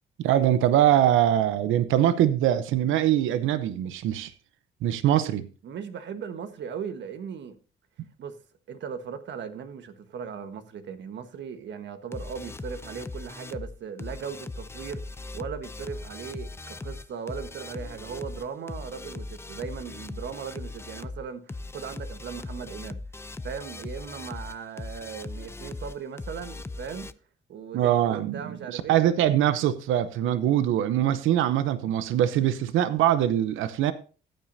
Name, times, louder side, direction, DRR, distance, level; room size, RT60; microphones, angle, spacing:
voice 1, 0.2-4.3 4.8-5.5 27.7-28.4 28.7-33.9, right 11 dB, 85° right, 0.8 m, -23 dB
voice 2, 5.6-7.6 8.2-8.4 8.7-23.0 23.4-27.1 27.5-29.2, right 7 dB, 65° right, 1.3 m, -38 dB
sound 1, 12.1-27.1, left 2 dB, 10° left, 0.5 m, -39 dB
14.0 x 8.9 x 2.7 m
cardioid pair, 90°, 20 cm